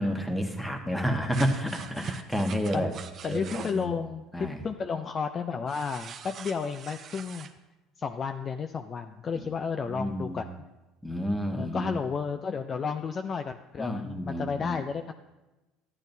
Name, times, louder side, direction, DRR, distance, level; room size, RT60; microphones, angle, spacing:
voice 1, 0.0-2.9 3.3-4.0 4.3-4.6 9.3-9.5 9.8-10.4 11.0-11.9 13.8-14.8, equal, 5° left, 3 dB, 1.3 m, -30 dB
sound 1, 1.3-3.8 5.7-7.5, right 7 dB, 45° right, 0.7 m, -42 dB
voice 2, 3.2-7.5 8.0-10.5 11.5-15.1, left 5 dB, 35° left, 7 dB, 0.4 m, -32 dB
12.5 x 10.5 x 2.7 m, 1.1 s
supercardioid pair, 100°, 0 cm